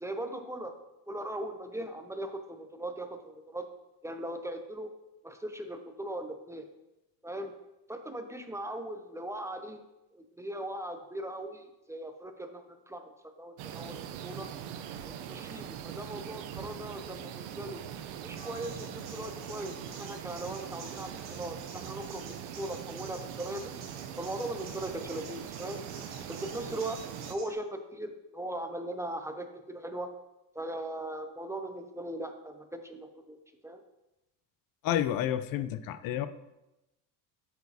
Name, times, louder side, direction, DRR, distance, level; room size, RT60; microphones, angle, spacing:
voice 1, 0.0-0.7 1.1-3.7 4.0-4.9 5.2-6.7 7.2-7.5 7.9-9.8 10.1-14.5 15.0-17.8 18.2-23.8 24.2-25.8 26.3-27.0 27.3-30.1 30.5-33.4 33.6-33.8, right 1 dB, 10° right, 6 dB, 0.3 m, -39 dB
sound 1, 13.6-27.3, right 9 dB, 85° right, 0.7 m, -42 dB
sound 2, 18.3-27.5, right 4 dB, 40° right, 1.9 m, -50 dB
voice 2, 34.8-36.3, left 11 dB, 55° left, 12 dB, 0.5 m, -30 dB
8.1 x 6.9 x 2.7 m, 0.96 s
cardioid pair, 120°, 42 cm